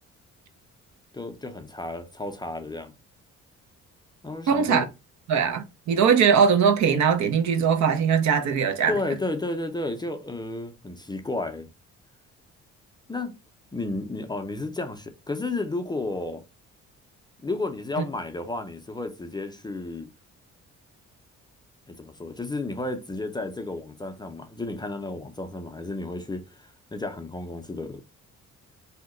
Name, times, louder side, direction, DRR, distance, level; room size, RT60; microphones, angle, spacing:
voice 1, 1.1-2.9 4.2-4.9 8.9-11.7 13.1-13.4 13.7-16.4 17.4-20.1 21.9-28.0, left 2 dB, 15° left, 0.4 m, -32 dB
voice 2, 4.5-4.8 5.3-8.9 18.0-18.1, right 6 dB, 65° right, 0.7 m, -21 dB
2.8 x 2.1 x 3.7 m
cardioid pair, 90°, 30 cm